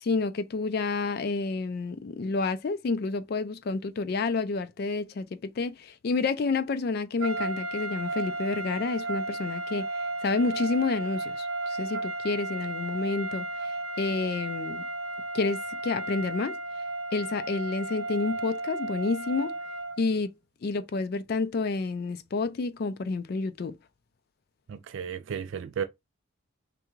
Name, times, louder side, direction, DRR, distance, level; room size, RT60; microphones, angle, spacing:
voice 1, 0.0-9.9 10.2-13.7 14.0-14.8 15.3-16.6 17.1-19.5 20.0-20.3 20.6-23.7, left 3 dB, 50° left, 0.3 m, -29 dB
sound 1, 7.2-20.0, right 2 dB, 85° right, 0.8 m, -34 dB
voice 2, 24.7-25.8, right 7 dB, 65° right, 0.3 m, -34 dB
3.5 x 3.4 x 3.1 m
head